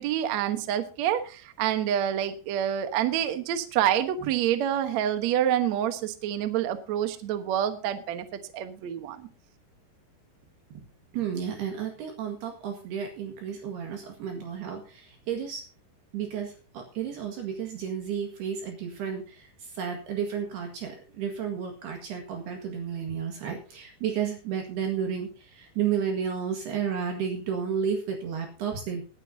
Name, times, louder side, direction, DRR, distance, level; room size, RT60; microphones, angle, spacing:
voice 1, 0.0-8.2 8.5-9.3, right 10 dB, 85° right, 9 dB, 1.5 m, -27 dB
voice 2, 11.1-15.6 16.1-29.0, right 7 dB, 65° right, 3 dB, 3.6 m, -32 dB
21.0 x 9.9 x 2.8 m, 0.35 s
omnidirectional pair, 5.2 m